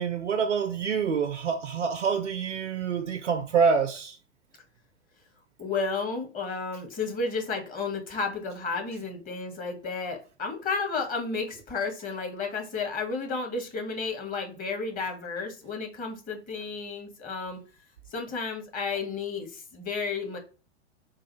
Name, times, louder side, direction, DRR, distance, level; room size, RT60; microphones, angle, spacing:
voice 1, 0.0-4.2, right 6 dB, 85° right, 0.5 m, -26 dB
voice 2, 5.6-17.6 18.1-20.4, left 4 dB, 25° left, 1.2 m, -32 dB
4.0 x 2.4 x 3.0 m
figure-of-eight pair, 95°, 35 cm